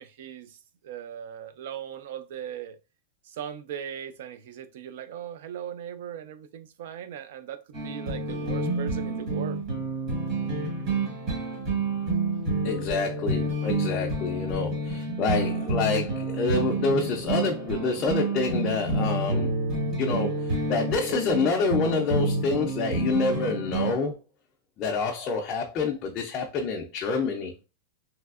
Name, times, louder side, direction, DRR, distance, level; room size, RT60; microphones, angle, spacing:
voice 1, 0.0-2.8 3.2-9.7, right 9 dB, 60° right, 0.4 m, -39 dB
sound 1, 7.7-23.9, right 2 dB, 30° right, 1.1 m, -29 dB
voice 2, 12.6-19.6 19.9-24.1 24.8-27.5, left 4 dB, 25° left, 0.3 m, -27 dB
3.1 x 2.6 x 2.3 m
supercardioid pair, 175°, 0 cm